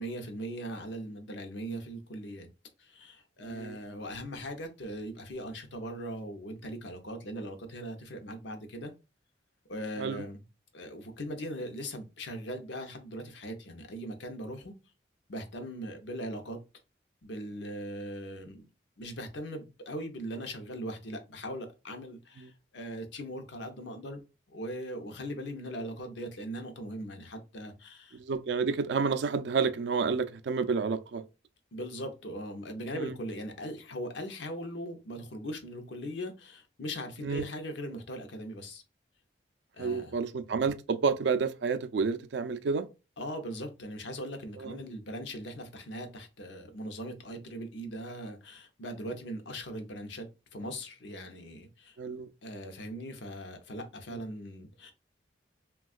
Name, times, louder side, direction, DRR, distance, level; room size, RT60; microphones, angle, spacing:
voice 1, 0.0-2.5 2.8-8.9 9.7-10.4 10.7-14.7 15.3-16.6 17.2-18.7 19.0-24.2 24.5-28.2 31.7-38.8 39.7-40.2 43.2-52.0 52.4-54.9, equal, 70° left, 0.7 m, -40 dB
voice 2, 3.4-3.8 10.0-10.2 22.4-22.5 28.1-31.2 32.9-33.1 37.2-37.4 39.8-42.9 44.6-44.8 52.0-52.3, right 5 dB, 65° right, 0.3 m, -30 dB
3.5 x 2.3 x 2.4 m
head